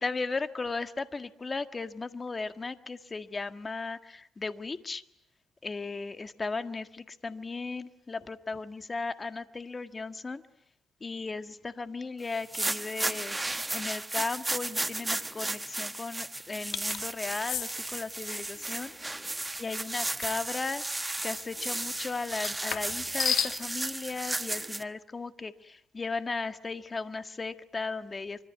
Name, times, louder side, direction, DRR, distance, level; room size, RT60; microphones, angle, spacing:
voice 1, 0.0-5.0 5.6-10.4 11.0-13.4 13.7-19.2 19.6-20.8 21.2-28.5, left 3 dB, 30° left, 10 dB, 1.7 m, -36 dB
sound 1, 12.3-24.8, right 2 dB, 15° right, 1.3 m, -34 dB
sound 2, 16.7-17.0 17.5-17.7 20.2-20.4 22.3-23.6, left 9 dB, 70° left, 2.3 m, -32 dB
25.5 x 25.0 x 9.4 m, 0.73 s
cardioid pair, 90°, 0 cm